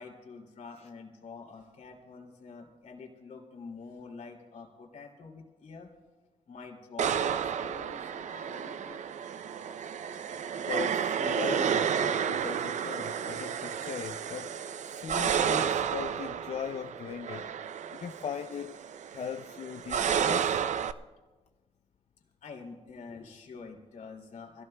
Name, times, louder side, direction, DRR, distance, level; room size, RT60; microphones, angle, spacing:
voice 1, 0.0-5.9 6.5-9.0 22.4-24.6, left 4 dB, 75° left, 2.7 m, -47 dB
sound 1, 7.0-20.9, right 8 dB, 70° right, 0.5 m, -31 dB
voice 2, 10.6-17.5 17.9-18.8 19.1-20.6, left 8 dB, 55° left, 0.4 m, -39 dB
25.0 x 17.0 x 2.2 m
wide cardioid pair, 125°, 13 cm